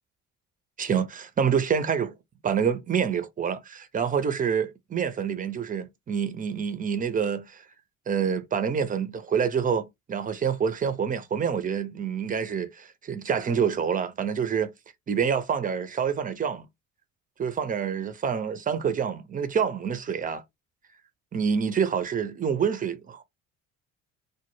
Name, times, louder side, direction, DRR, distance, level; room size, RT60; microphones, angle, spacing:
voice 1, 0.8-2.1 2.4-7.6 8.1-14.7 15.1-16.7 17.4-20.4 21.3-23.2, right 7 dB, 20° right, 0.5 m, -27 dB
2.0 x 2.0 x 3.0 m
hypercardioid pair, 55°, 40 cm